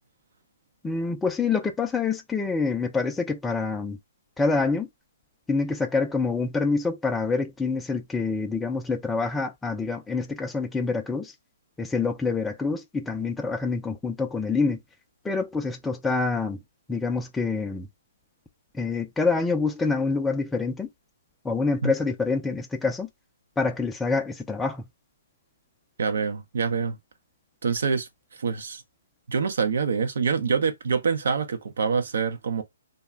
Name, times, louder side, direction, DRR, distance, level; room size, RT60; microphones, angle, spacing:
voice 1, 0.8-4.0 4.4-4.9 5.5-11.3 11.8-14.8 15.2-16.6 16.9-17.9 18.7-20.9 21.4-23.1 23.6-24.8, left 4 dB, 5° left, 0.3 m, -26 dB
voice 2, 26.0-27.0 27.6-28.1 28.4-28.8 29.3-32.6, right 5 dB, 70° right, 0.6 m, -25 dB
2.3 x 2.1 x 3.4 m
hypercardioid pair, 150°, 0 cm